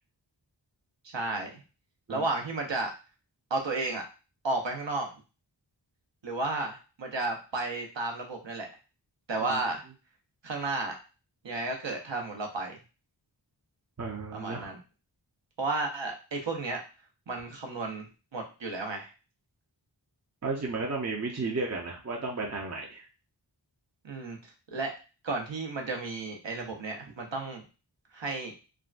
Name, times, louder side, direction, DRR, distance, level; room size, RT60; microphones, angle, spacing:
voice 1, 1.1-1.6 2.1-2.9 3.5-4.0 4.4-5.1 6.2-8.7 9.3-9.8 10.4-10.9 11.4-12.8 14.3-14.8 15.6-16.8 17.3-18.0 18.3-19.1 24.0-24.9 25.2-27.7 28.1-28.5, right 3 dB, 70° right, 2 dB, 0.8 m, -33 dB
voice 2, 14.0-14.7 20.4-23.1, right 3 dB, 35° right, -1 dB, 0.6 m, -33 dB
3.5 x 2.1 x 2.4 m, 0.32 s
wide cardioid pair, 40°, 46 cm